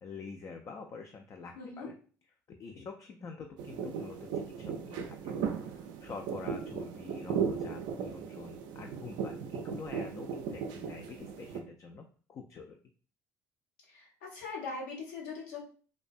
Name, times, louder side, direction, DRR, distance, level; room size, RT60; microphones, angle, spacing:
voice 1, 0.0-1.9 2.6-12.8, left 4 dB, 40° left, 3 dB, 0.3 m, -47 dB
voice 2, 1.6-1.9 13.9-15.6, left 4 dB, 80° left, -3 dB, 0.9 m, -41 dB
sound 1, 3.6-11.6, right 6 dB, 70° right, 0.4 m, -37 dB
2.5 x 2.1 x 2.4 m, 0.40 s
hypercardioid pair, 65°, 8 cm